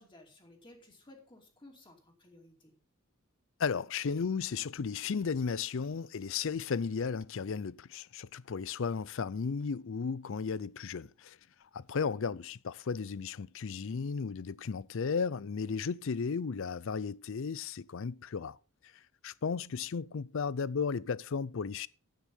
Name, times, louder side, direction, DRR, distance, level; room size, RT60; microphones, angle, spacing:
voice 1, 0.0-2.7, left 1 dB, 20° left, 2.7 m, -57 dB
voice 2, 3.6-11.4 11.7-18.6 19.2-21.9, left 5 dB, 60° left, 0.5 m, -34 dB
10.0 x 9.1 x 5.4 m
head